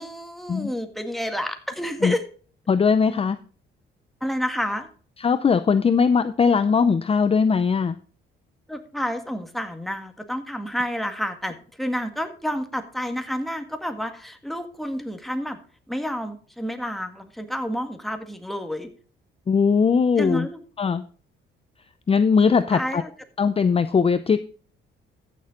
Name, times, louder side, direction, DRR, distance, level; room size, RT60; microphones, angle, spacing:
voice 1, 0.0-2.2 4.2-4.9 8.7-15.6 15.9-18.9 20.2-20.6 22.7-23.1, equal, ahead, 6 dB, 1.8 m, -29 dB
voice 2, 2.7-3.4 5.2-8.0 19.5-20.5 20.8-21.0 22.1-23.0 23.4-24.4, left 5 dB, 30° left, 12 dB, 0.6 m, -20 dB
14.5 x 6.7 x 3.8 m, 0.41 s
cardioid pair, 90°, 20 cm